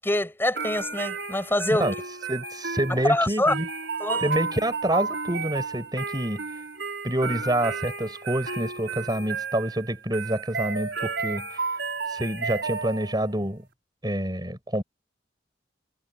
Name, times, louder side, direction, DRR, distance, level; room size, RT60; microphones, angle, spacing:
voice 1, 0.0-1.9 3.1-3.5 4.0-4.3, left 1 dB, 10° left, 7.8 m, -25 dB
sound 1, 0.6-13.4, right 4 dB, 80° right, 4.9 m, -32 dB
voice 2, 2.3-3.7 4.2-6.4 7.0-11.7 12.1-13.6 14.0-14.8, right 1 dB, 25° right, 6.1 m, -27 dB
head